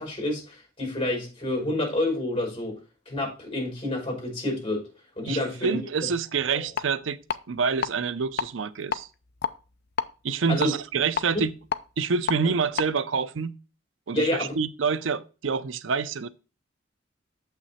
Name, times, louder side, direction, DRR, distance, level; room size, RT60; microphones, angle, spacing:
voice 1, 0.0-2.8 3.1-4.8 5.2-6.1 10.5-10.7 11.3-11.4 14.1-14.5, left 1 dB, 30° left, 5.3 m, -28 dB
voice 2, 5.3-7.2 7.5-9.1 10.2-11.5 12.0-13.5 14.1-16.3, right 5 dB, 80° right, 0.6 m, -27 dB
sound 1, 6.8-6.9 7.3-7.9 8.2-8.5 8.9-10.1 10.6-12.4 12.7-12.9, left 6 dB, 60° left, 0.6 m, -29 dB
7.6 x 6.0 x 4.2 m
head